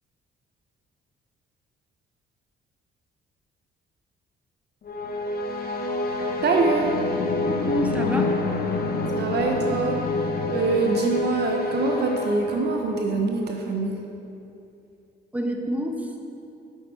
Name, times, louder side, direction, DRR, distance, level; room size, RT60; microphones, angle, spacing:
sound 1, 4.8-13.3, left 2 dB, 50° left, 0.7 m, -27 dB
voice 1, 6.4-6.9 9.1-10.0 10.5-14.0, right 4 dB, 55° right, 2 dB, 0.7 m, -24 dB
voice 2, 7.4-8.4 15.3-16.2, right 1 dB, 5° right, 3 dB, 0.7 m, -28 dB
7.9 x 5.9 x 4.4 m, 2.7 s
cardioid pair, 90°, 20 cm